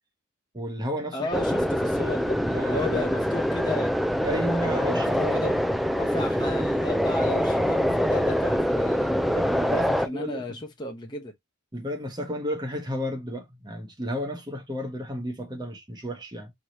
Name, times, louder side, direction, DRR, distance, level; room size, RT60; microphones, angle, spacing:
voice 1, 0.5-1.7 2.5-3.1 4.2-5.5 8.7-8.8 9.1-10.4 11.7-16.5, equal, 20° right, 1.1 m, -32 dB
voice 2, 1.1-3.9 4.7-5.6 6.0-9.3 9.7-11.3, left 2 dB, 20° left, 0.8 m, -34 dB
sound 1, 1.3-10.1, equal, ahead, 0.3 m, -25 dB
4.8 x 2.9 x 2.9 m
head